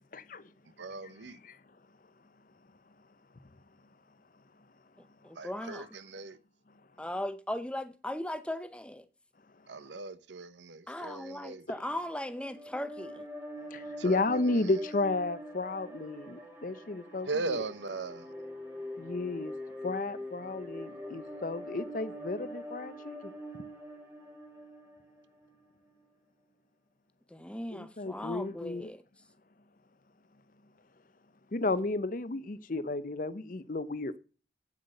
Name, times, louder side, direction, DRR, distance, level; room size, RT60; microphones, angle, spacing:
voice 1, 0.1-0.5 1.4-1.6 5.6-5.7 9.8-9.9 13.7-17.6 19.0-19.5 19.8-23.3 27.7-28.9 31.5-34.2, left 2 dB, 45° left, 0.7 m, -33 dB
voice 2, 0.8-1.4 5.3-6.4 9.7-11.7 14.0-14.7 17.2-18.3, right 3 dB, 80° right, 1.0 m, -39 dB
voice 3, 5.2-5.9 7.0-9.1 10.9-13.3 27.3-29.0, left 1 dB, 5° left, 0.7 m, -38 dB
sound 1, 12.2-25.5, equal, 15° right, 2.2 m, -44 dB
8.8 x 8.0 x 6.5 m
head